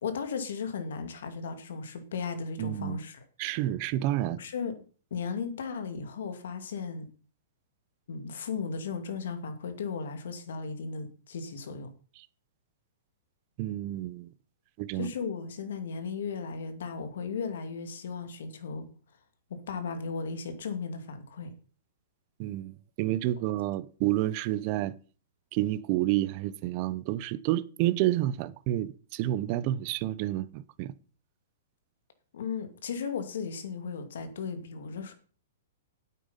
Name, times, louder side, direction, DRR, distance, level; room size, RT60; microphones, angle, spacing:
voice 1, 0.0-3.2 4.4-4.8 5.1-7.1 8.1-11.9 14.9-18.9 19.5-21.5 32.3-35.1, left 5 dB, 75° left, 2.3 m, -36 dB
voice 2, 2.6-3.0 3.4-4.4 13.6-14.3 14.8-15.1 22.4-24.9 25.5-30.9, right 14 dB, 40° right, 0.7 m, -29 dB
9.1 x 8.5 x 5.6 m
hypercardioid pair, 135°, 0 cm